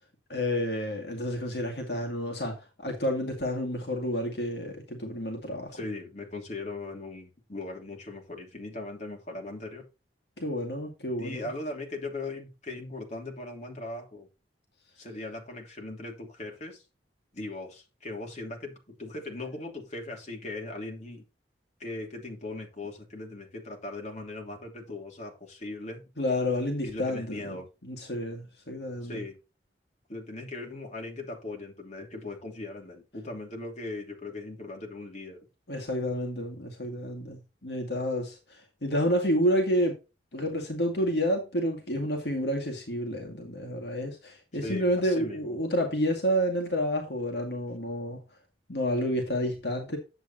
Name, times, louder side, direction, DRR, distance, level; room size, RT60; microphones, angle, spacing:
voice 1, 0.3-5.8 10.4-11.4 26.2-27.6 27.8-29.2 35.7-39.9 40.3-48.2 48.7-50.0, equal, 65° left, 2.1 m, -29 dB
voice 2, 5.7-9.9 11.2-14.3 15.0-16.8 17.3-21.2 21.8-26.0 26.8-27.6 29.0-29.4 30.1-35.4 44.6-45.6, left 2 dB, 40° left, 3.0 m, -39 dB
10.0 x 7.7 x 2.8 m
head